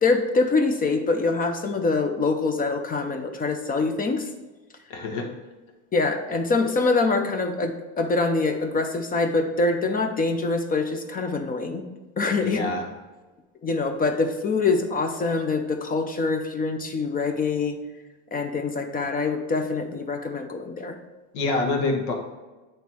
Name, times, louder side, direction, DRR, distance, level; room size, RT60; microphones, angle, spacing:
voice 1, 0.0-4.3 5.9-11.8 12.2-12.6 13.6-17.8 18.3-21.0, left 3 dB, 25° left, 6 dB, 0.6 m, -24 dB
voice 2, 4.9-5.3 12.4-12.9 21.3-22.1, left 3 dB, 85° left, 2 dB, 1.4 m, -26 dB
8.0 x 3.1 x 4.4 m, 1.2 s
supercardioid pair, 110°, 34 cm